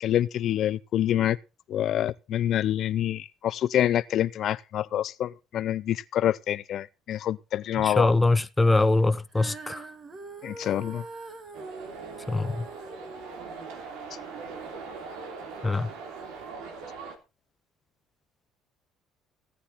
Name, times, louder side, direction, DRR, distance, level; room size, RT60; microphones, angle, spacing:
voice 1, 0.0-1.4 1.7-8.1 10.4-11.0, left 11 dB, 60° left, 0.5 m, -26 dB
voice 2, 7.8-9.9 12.3-12.7 15.6-15.9, left 2 dB, 10° left, 0.9 m, -23 dB
Female singing, 9.3-15.6 16.3-16.4, right 3 dB, 40° right, 2.3 m, -44 dB
sound 1, 11.5-17.2, right 5 dB, 85° right, 3.1 m, -41 dB
16.5 x 9.7 x 4.2 m
cardioid pair, 110°, 0 cm